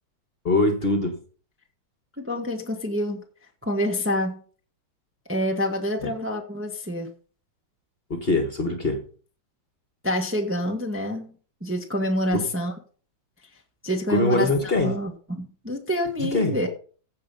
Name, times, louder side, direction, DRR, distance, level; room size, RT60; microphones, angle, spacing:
voice 1, 0.4-1.2 6.0-6.1 8.1-9.0 12.3-12.5 14.1-14.9 16.2-16.6, left 2 dB, 35° left, 6 dB, 1.5 m, -23 dB
voice 2, 2.2-3.2 3.6-4.4 5.3-7.1 10.0-11.3 11.6-12.7 13.8-16.7, left 1 dB, 10° right, 3 dB, 1.1 m, -27 dB
15.0 x 5.5 x 5.5 m, 0.41 s
omnidirectional pair, 2.0 m